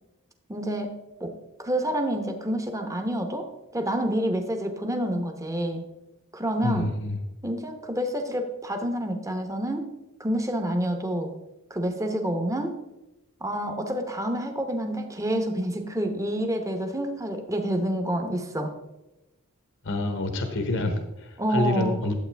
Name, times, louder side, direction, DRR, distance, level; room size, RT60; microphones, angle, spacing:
voice 1, 0.5-0.9 1.2-1.3 1.6-3.5 3.7-5.8 6.3-6.9 7.4-9.9 10.2-11.3 11.7-12.7 13.4-18.7 21.4-22.0, right 1 dB, 15° right, 5 dB, 1.0 m, -28 dB
voice 2, 6.6-7.2 19.8-22.1, left 2 dB, 60° left, 6 dB, 1.0 m, -27 dB
11.5 x 8.0 x 3.4 m, 0.99 s
head